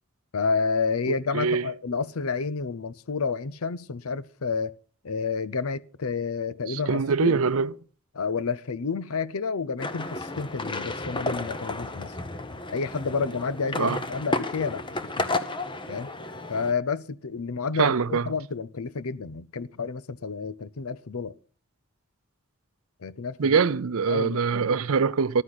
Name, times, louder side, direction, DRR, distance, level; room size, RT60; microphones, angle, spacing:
voice 1, 0.3-4.7 5.0-7.3 8.1-12.1 12.7-14.8 15.2-15.3 15.9-16.1 16.5-21.3 23.0-23.6 24.1-24.4, left 5 dB, 85° left, 0.7 m, -30 dB
voice 2, 1.1-1.7 6.7-7.7 13.7-14.0 17.8-18.3 23.4-25.4, right 5 dB, 75° right, 0.6 m, -24 dB
sound 1, 9.8-16.7, left 2 dB, 20° left, 1.0 m, -32 dB
14.5 x 12.0 x 4.1 m
head